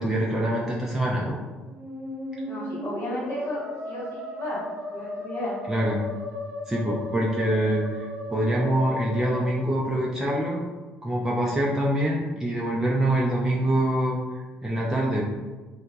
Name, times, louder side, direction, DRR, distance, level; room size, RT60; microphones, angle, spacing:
voice 1, 0.0-1.4 5.7-6.0 6.7-10.6 11.0-15.2, right 1 dB, 5° right, -4 dB, 0.5 m, -25 dB
Musical instrument, 1.6-10.4, left 1 dB, 45° right, 0.8 m, -36 dB
voice 2, 2.4-4.6 4.9-5.6, left 1 dB, 55° left, -9 dB, 1.3 m, -33 dB
2.9 x 2.2 x 2.6 m, 1.3 s
hypercardioid pair, 55°, 5 cm